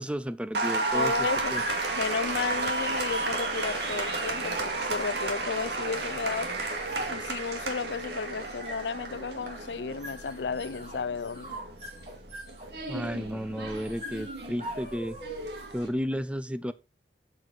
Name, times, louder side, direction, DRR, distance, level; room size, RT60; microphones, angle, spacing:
voice 1, 0.0-1.6 12.9-15.2 15.7-16.7, equal, 5° right, 0.5 m, -33 dB
Applause, 0.5-15.9, right 3 dB, 65° right, 2.3 m, -33 dB
voice 2, 0.9-1.5 1.9-6.7 7.1-11.6, left 5 dB, 70° left, 0.6 m, -33 dB
sound 1, 0.9-15.8, right 1 dB, 40° right, 6.6 m, -43 dB
7.7 x 7.7 x 4.1 m
head